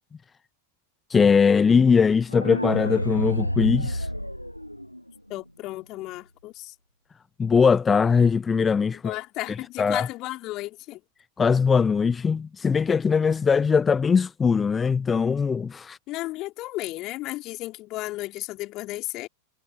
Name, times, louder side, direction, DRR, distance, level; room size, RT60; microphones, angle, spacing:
voice 1, 1.1-4.1 7.4-9.1 9.5-10.1 11.4-16.0, left 6 dB, 15° left, 0.8 m, -21 dB
sound 1, 2.3-5.3, equal, 90° left, 0.5 m, -29 dB
voice 2, 5.3-6.7 9.0-11.0 16.1-19.3, left 18 dB, 40° left, 3.5 m, -34 dB
figure-of-eight pair, 90°, 0 cm